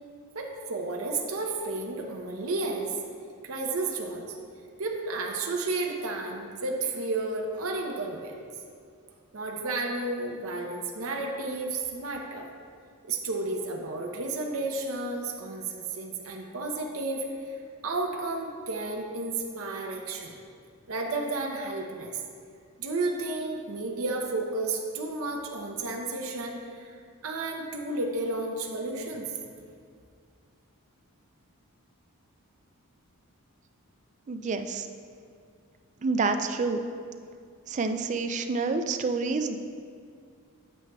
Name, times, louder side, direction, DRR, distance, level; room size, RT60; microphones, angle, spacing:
voice 1, 0.3-3.0 3.4-4.4 4.8-8.3 9.3-12.5 13.0-20.3 20.9-22.2 22.8-26.9 27.2-29.2, right 2 dB, 65° right, 1 dB, 0.7 m, -32 dB
voice 2, 34.3-34.9 36.0-36.8 37.7-39.6, right 4 dB, 35° right, 7 dB, 0.3 m, -28 dB
9.0 x 7.2 x 2.3 m, 2.2 s
head